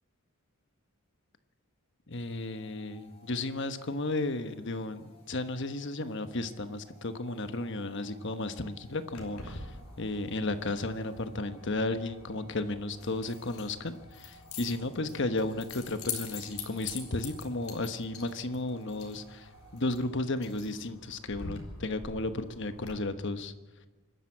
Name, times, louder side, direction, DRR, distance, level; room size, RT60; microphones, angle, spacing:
voice 1, 2.1-9.7 10.0-23.5, left 2 dB, 55° left, 9 dB, 1.2 m, -34 dB
sound 1, 2.1-20.3, right 2 dB, 25° left, 6.7 m, -59 dB
Keys jangling, 9.1-22.9, left 5 dB, 75° left, 3.8 m, -45 dB
25.5 x 12.5 x 8.6 m, 1.2 s
head